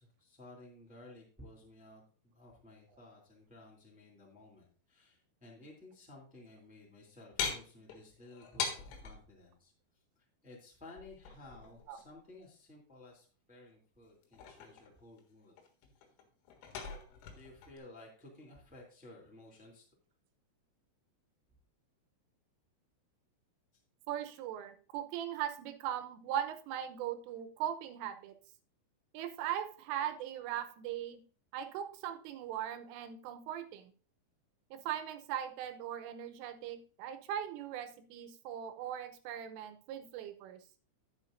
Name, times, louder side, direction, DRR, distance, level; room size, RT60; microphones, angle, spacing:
voice 1, 0.0-15.6 17.3-19.9, left 2 dB, 5° right, -2 dB, 0.8 m, -55 dB
sound 1, 7.4-9.2 11.0-12.0 14.0-15.2 15.6-17.8, left 6 dB, 85° left, 4.3 m, -41 dB
voice 2, 24.1-28.3 29.1-31.2 31.5-33.9 34.7-40.6, right 10 dB, 85° right, 8 dB, 3.4 m, -39 dB
11.0 x 10.0 x 2.6 m, 0.41 s
omnidirectional pair, 5.7 m